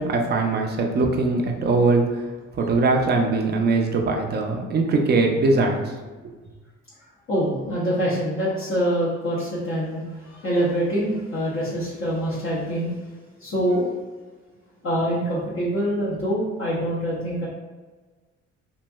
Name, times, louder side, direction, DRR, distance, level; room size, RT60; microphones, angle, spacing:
voice 1, 0.0-2.3 2.5-5.9, right 3 dB, 35° right, 2 dB, 0.5 m, -21 dB
voice 2, 7.3-13.1 13.4-13.9 14.8-17.5, equal, 45° left, -8 dB, 0.8 m, -25 dB
3.0 x 2.5 x 2.2 m, 1.3 s
cardioid pair, 90°, 30 cm